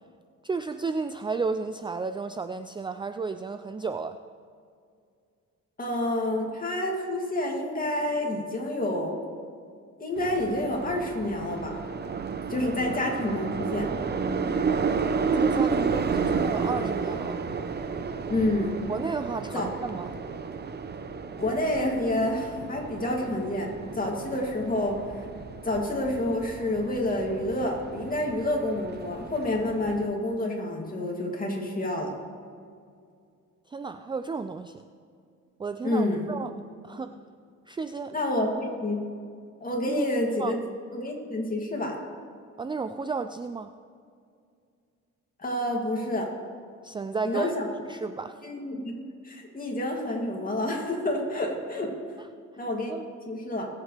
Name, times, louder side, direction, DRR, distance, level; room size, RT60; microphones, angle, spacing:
voice 1, 0.4-4.2 15.3-17.4 18.9-20.1 33.7-34.8 35.6-36.5 36.8-37.2 37.7-38.1 39.9-40.1 40.4-40.6 42.6-43.7 46.8-47.5 47.9-48.4 52.2-52.3 52.9-53.1, right 4 dB, 15° right, 9 dB, 0.4 m, -33 dB
voice 2, 5.8-9.2 10.0-11.8 12.5-13.9 18.3-18.7 19.5-19.6 21.4-25.0 25.6-32.1 35.8-36.3 38.1-38.5 38.8-39.1 39.6-40.6 40.9-42.0 45.4-46.3 47.2-47.7 48.4-51.9 52.6-52.9 53.3-53.7, left 1 dB, 30° left, 0 dB, 2.7 m, -28 dB
sound 1, 10.2-30.0, right 5 dB, 35° right, 0.8 m, -32 dB
22.0 x 8.2 x 3.4 m, 2.3 s
cardioid pair, 90°, 30 cm